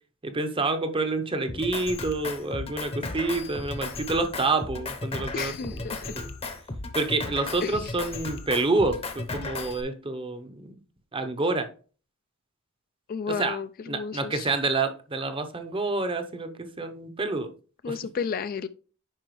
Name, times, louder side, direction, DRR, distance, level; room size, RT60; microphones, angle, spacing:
voice 1, 0.2-6.3 6.9-10.8 11.1-11.7 13.3-13.6 13.9-17.5 17.9-18.0, right 3 dB, 25° right, 0.7 m, -28 dB
Drum kit, 1.5-9.8, left 3 dB, 30° left, 0.8 m, -35 dB
voice 2, 5.3-6.2 7.6-7.9 13.1-14.5 17.8-18.7, left 6 dB, 45° left, 0.3 m, -32 dB
9.0 x 5.5 x 3.1 m
head